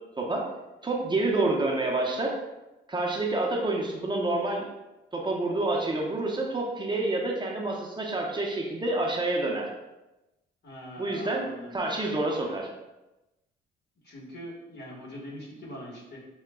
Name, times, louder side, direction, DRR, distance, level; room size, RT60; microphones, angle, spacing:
voice 1, 0.2-0.5 0.8-2.4 2.9-4.7 5.1-9.7 11.0-12.7, right 2 dB, 25° right, -1 dB, 0.7 m, -28 dB
voice 2, 10.6-11.8 14.0-16.2, equal, 60° left, -5 dB, 1.4 m, -42 dB
5.8 x 2.2 x 2.2 m, 1.0 s
cardioid pair, 90°, 20 cm